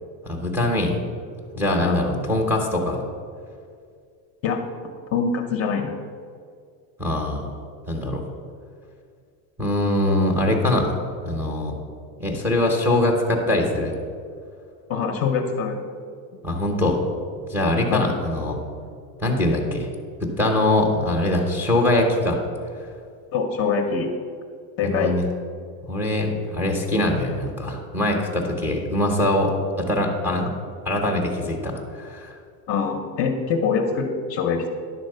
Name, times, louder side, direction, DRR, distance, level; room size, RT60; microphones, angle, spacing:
voice 1, 0.2-1.0 1.5-3.0 7.0-7.6 7.9-8.2 9.6-11.8 12.2-13.9 16.4-17.0 17.5-18.6 19.2-19.9 20.2-22.4 24.8-25.2 25.8-29.5 29.8-30.5 30.8-32.3, left 1 dB, 5° right, 1 dB, 0.7 m, -22 dB
voice 2, 5.1-5.9 14.9-15.8 17.9-18.1 23.3-24.1 24.8-25.1 32.7-34.7, left 5 dB, 35° left, 4 dB, 0.7 m, -24 dB
10.5 x 4.1 x 6.6 m, 2.2 s
cardioid pair, 165°, 41 cm